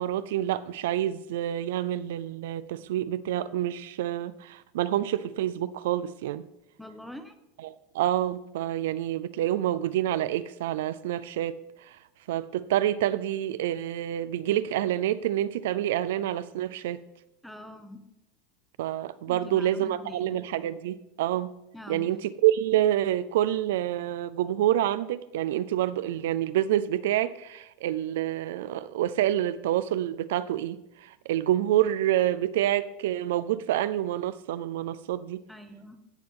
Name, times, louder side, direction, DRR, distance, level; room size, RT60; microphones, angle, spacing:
voice 1, 0.0-6.4 7.6-12.0 12.3-17.0 18.8-21.5 21.9-35.4, right 12 dB, 75° right, 0.4 m, -27 dB
voice 2, 6.8-7.3 17.4-18.1 19.3-20.4 21.7-22.1 35.5-36.0, left 1 dB, ahead, 0.8 m, -44 dB
15.0 x 6.0 x 3.7 m
supercardioid pair, 145°, 0 cm